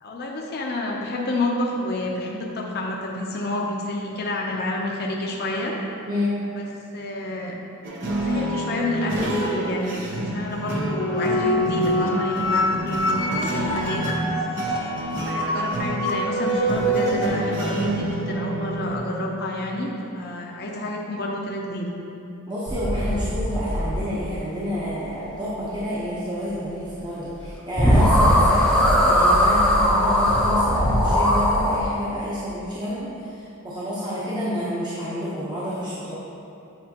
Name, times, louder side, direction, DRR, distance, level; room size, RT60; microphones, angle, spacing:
voice 1, 0.0-5.7 6.6-6.7 6.9-7.5 8.2-14.1 15.3-21.9, left 1 dB, 45° left, -2 dB, 0.6 m, -29 dB
sound 1, 7.8-19.0, right 1 dB, 55° right, 0.8 m, -29 dB
sound 2, 10.7-17.3, equal, 80° left, 0.9 m, -25 dB
voice 2, 22.5-36.1, equal, 20° right, -10 dB, 0.9 m, -29 dB
sound 3, 22.7-24.3 27.4-27.5 27.8-31.8, equal, 5° left, 0.6 m, -19 dB
8.4 x 4.9 x 2.9 m, 2.7 s
head